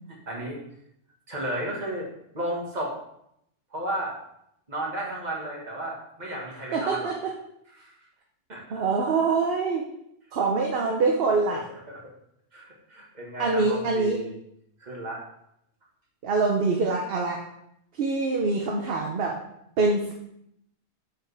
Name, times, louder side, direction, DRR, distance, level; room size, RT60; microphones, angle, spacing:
voice 1, 0.3-0.6 1.3-2.1 2.3-3.0 3.7-4.1 4.7-7.1 7.8-7.9 8.5-8.8 11.5-11.6 11.9-12.0 12.5-14.3 14.8-15.2, right 1 dB, 40° right, -3 dB, 1.9 m, -33 dB
voice 2, 6.7-7.3 8.7-9.9 10.3-11.7 13.4-14.2 16.2-17.4 18.0-19.4 19.8-20.1, right 3 dB, 55° right, 1 dB, 1.0 m, -24 dB
7.7 x 6.8 x 3.4 m, 0.77 s
omnidirectional pair, 1.2 m